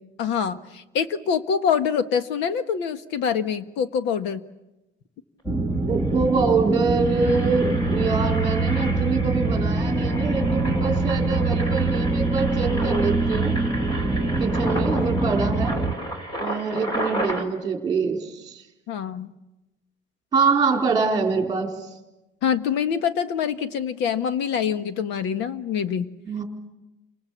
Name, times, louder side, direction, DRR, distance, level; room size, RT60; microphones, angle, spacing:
voice 1, 0.2-4.4 18.9-19.3 22.4-26.1, left 7 dB, 65° left, 10 dB, 1.6 m, -25 dB
sound 1, 5.4-15.9, right 2 dB, 5° left, 2.2 m, -24 dB
Engine, 5.7-5.8 6.0-6.3 6.7-17.4, right 1 dB, 20° left, 3.4 m, -33 dB
voice 2, 5.9-13.5 14.4-15.8 16.4-18.6 20.3-21.7 26.3-26.4, right 4 dB, 20° right, 3 dB, 4.1 m, -25 dB
29.5 x 26.5 x 7.5 m, 1.0 s
cardioid pair, 180°, 19 cm